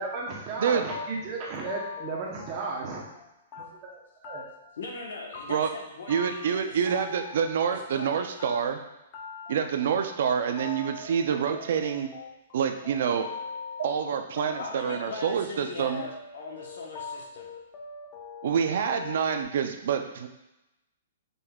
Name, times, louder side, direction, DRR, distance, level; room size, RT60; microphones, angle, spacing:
voice 1, 0.0-3.0 3.6-3.7 4.2-4.4, right 3 dB, 25° right, -2 dB, 0.8 m, -34 dB
sound 1, 0.9-3.2 3.5-4.0 4.2-4.7 5.0-5.8 6.1-8.1 8.4-19.4, left 5 dB, 25° left, 0.5 m, -42 dB
voice 2, 4.8-6.8 7.7-8.2 14.6-17.5, left 3 dB, 70° left, 0 dB, 1.0 m, -40 dB
voice 3, 6.1-8.8 9.5-12.1 12.5-13.3 13.8-16.0 18.4-20.3, right 7 dB, 55° right, 6 dB, 0.3 m, -27 dB
5.2 x 3.4 x 2.3 m, 0.94 s
hypercardioid pair, 170°, 0 cm